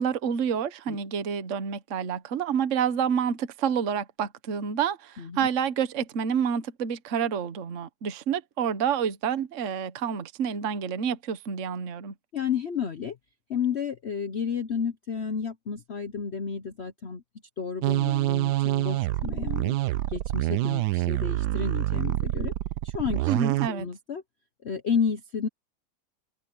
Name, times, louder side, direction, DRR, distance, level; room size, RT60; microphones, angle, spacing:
voice 1, 0.0-12.1 23.3-23.9, right 7 dB, 45° right, 1.3 m, -28 dB
voice 2, 5.2-5.5 12.3-13.2 13.5-17.2 17.6-19.8 20.1-22.5 22.8-23.3 23.7-24.2 24.6-25.5, left 6 dB, 50° left, 0.8 m, -31 dB
sound 1, 17.8-23.7, right 16 dB, 70° right, 1.0 m, -26 dB
omnidirectional pair, 2.0 m